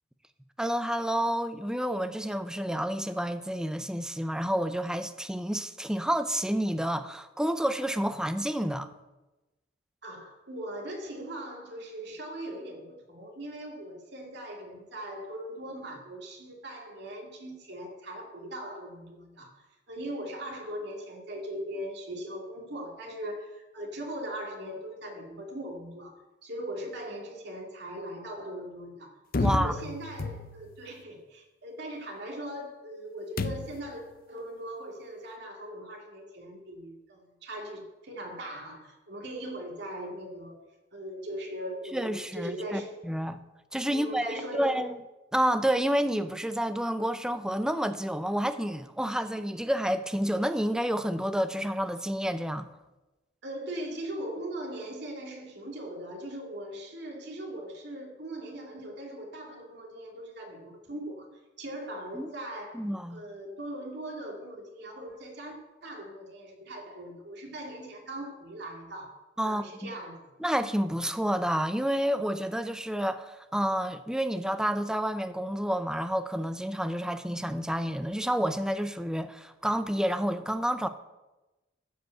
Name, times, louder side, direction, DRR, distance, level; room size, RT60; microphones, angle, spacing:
voice 1, 0.6-8.9 29.4-29.9 41.9-43.4 43.7-45.0 45.3-52.7 62.1-62.3 62.7-63.2 69.4-70.0 70.4-80.9, equal, 5° right, 0.5 m, -29 dB
voice 2, 10.0-29.1 29.4-40.6 40.9-42.9 43.8-44.8 53.4-61.3 61.6-62.8 63.1-69.1 69.4-70.3, right 1 dB, 65° right, 2.6 m, -40 dB
sound 1, 29.3-30.8 33.4-34.0, left 3 dB, 50° left, 0.6 m, -31 dB
14.0 x 5.3 x 7.8 m
head